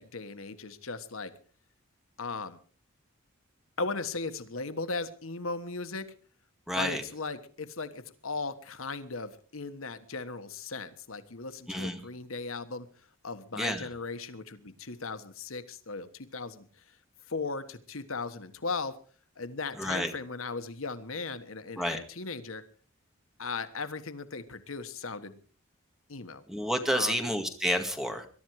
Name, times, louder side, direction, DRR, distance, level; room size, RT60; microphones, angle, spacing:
voice 1, 0.0-1.3 2.2-2.6 3.8-6.1 6.8-12.9 13.2-16.6 17.3-18.9 19.4-22.6 23.4-25.4 26.1-26.4 26.9-27.2, left 4 dB, 80° left, 10 dB, 1.4 m, -37 dB
voice 2, 6.7-7.0 11.7-12.0 13.6-13.9 19.8-20.1 21.8-22.0 26.5-28.3, equal, ahead, 5 dB, 2.1 m, -30 dB
22.0 x 12.0 x 4.8 m, 0.41 s
head